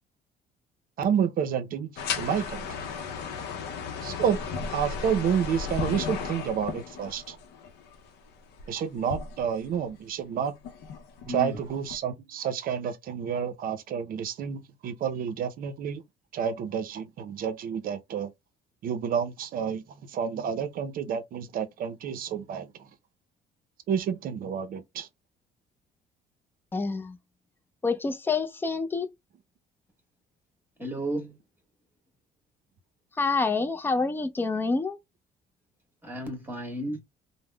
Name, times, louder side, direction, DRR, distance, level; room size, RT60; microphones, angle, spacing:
voice 1, 1.0-1.9 2.2-2.7 4.0-4.4 4.7-7.4 8.7-10.5 11.3-16.0 16.3-18.3 18.8-22.7 23.9-25.1, right 8 dB, 60° right, 0.6 m, -29 dB
sound 1, 2.0-10.0 10.5-12.0, left 5 dB, 80° left, 0.6 m, -35 dB
voice 2, 11.2-11.6 30.8-31.4 36.0-37.0, right 1 dB, 10° right, 1.5 m, -33 dB
voice 3, 26.7-27.2 27.8-29.1 33.2-35.0, left 4 dB, 15° left, 0.4 m, -27 dB
3.4 x 2.1 x 2.2 m
cardioid pair, 110°, 17 cm